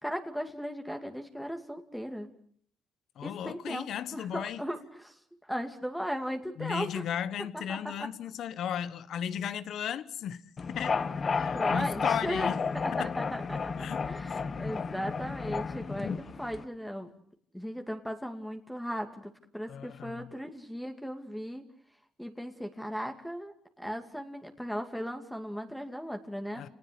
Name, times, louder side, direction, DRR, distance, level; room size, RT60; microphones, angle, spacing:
voice 1, 0.0-2.3 3.2-7.0 7.5-7.8 11.3-13.7 14.1-17.1 17.5-21.6 22.2-26.6, equal, ahead, 2.5 m, -37 dB
voice 2, 3.2-4.6 6.6-12.6 12.9-13.1 13.8-14.0 19.7-20.3 26.6-26.7, left 9 dB, 70° left, 1.3 m, -35 dB
sound 1, 10.6-16.6, left 5 dB, 40° left, 1.5 m, -32 dB
29.5 x 19.0 x 8.6 m
cardioid pair, 90°, 0 cm